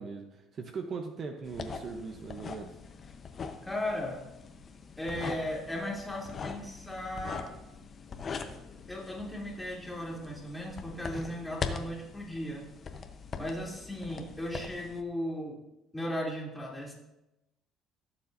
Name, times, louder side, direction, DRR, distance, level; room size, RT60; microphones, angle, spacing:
voice 1, 0.0-2.8, right 5 dB, 45° right, 5 dB, 0.8 m, -39 dB
sound 1, 1.4-15.0, left 5 dB, 40° left, 0.9 m, -42 dB
voice 2, 3.6-4.2 5.0-7.5 8.9-12.6 13.4-15.5 15.9-16.9, left 1 dB, 5° left, -3 dB, 2.7 m, -36 dB
15.5 x 7.0 x 2.6 m, 0.93 s
cardioid pair, 105°, 0 cm